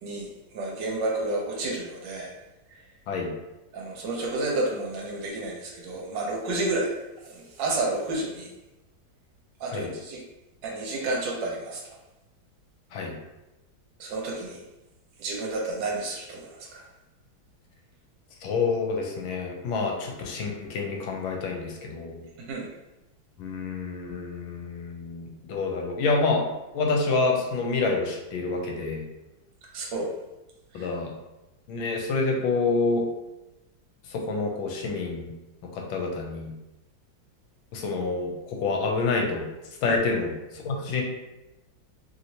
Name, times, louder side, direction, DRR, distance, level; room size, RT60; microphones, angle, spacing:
voice 1, 0.0-2.3 2.7-2.8 3.7-6.9 7.2-8.5 9.6-10.2 10.6-12.0 14.0-14.6 15.2-16.9 22.4-22.7 29.7-30.1 30.7-30.9 39.8-39.9, right 2 dB, 70° right, -1 dB, 1.2 m, -31 dB
voice 2, 18.4-22.2 23.4-26.4 26.7-29.0 30.7-31.1 31.7-33.0 34.1-35.3 35.7-36.5 37.7-39.4 39.8-41.0, left 3 dB, 85° left, 1 dB, 1.4 m, -27 dB
3.1 x 2.8 x 2.6 m, 0.97 s
omnidirectional pair, 2.2 m